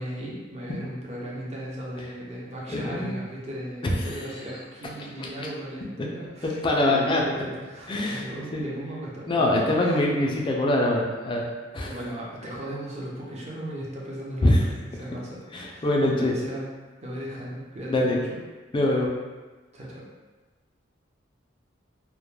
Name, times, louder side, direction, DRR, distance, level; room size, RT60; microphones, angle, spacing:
voice 1, 0.0-10.0 11.8-16.7 17.0-18.4 19.7-20.1, right 1 dB, 35° right, -5 dB, 0.5 m, -37 dB
voice 2, 2.7-3.2 3.8-3.9 5.2-5.5 6.4-7.3 7.9-8.6 9.3-11.5 11.7-11.9 14.4-14.6 15.5-16.3 17.9-18.2 18.7-19.1, left 1 dB, 25° left, -1 dB, 0.3 m, -24 dB
2.1 x 2.1 x 3.0 m, 1.3 s
head